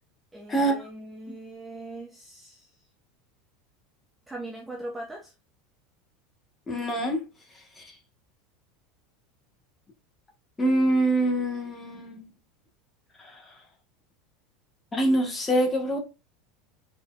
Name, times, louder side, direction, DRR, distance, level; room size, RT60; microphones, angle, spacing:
voice 1, 0.3-2.7 4.3-5.3, right 1 dB, 5° right, 0.6 m, -40 dB
voice 2, 6.7-7.2 7.8-7.9 10.6-12.3 14.9-16.0, right 1 dB, 10° left, 1.2 m, -24 dB
4.6 x 4.2 x 2.3 m
supercardioid pair, 175°, 0 cm